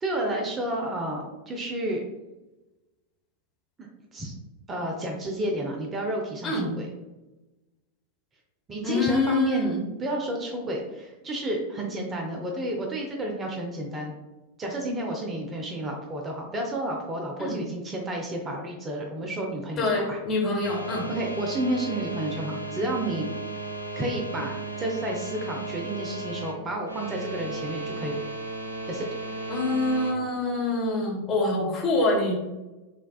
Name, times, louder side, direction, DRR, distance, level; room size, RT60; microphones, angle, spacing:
voice 1, 0.0-2.0 4.1-4.3 4.7-6.9 8.7-14.1 14.6-20.2 20.5-20.7 21.1-23.3 24.0-28.2 28.9-29.1, right 1 dB, 20° right, 1 dB, 0.6 m, -31 dB
voice 2, 8.8-9.8 17.4-17.6 19.8-21.1 29.5-32.3, left 2 dB, 30° left, -2 dB, 1.2 m, -25 dB
sound 1, 20.6-30.1, right 2 dB, 85° right, 0.5 m, -35 dB
5.6 x 2.4 x 2.3 m, 1.1 s
figure-of-eight pair, 90°, 0 cm